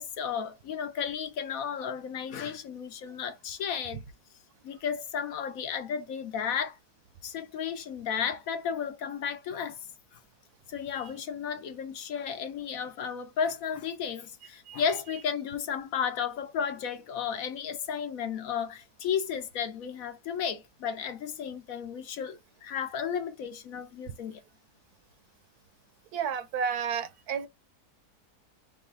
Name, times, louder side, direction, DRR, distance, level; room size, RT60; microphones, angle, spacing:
voice 1, 0.0-4.0 4.6-6.8 7.2-9.8 10.1-10.2 10.7-24.4, left 7 dB, 65° left, 1.0 m, -33 dB
voice 2, 26.1-27.5, right 7 dB, 75° right, 1.2 m, -31 dB
5.5 x 2.2 x 3.9 m
omnidirectional pair, 1.7 m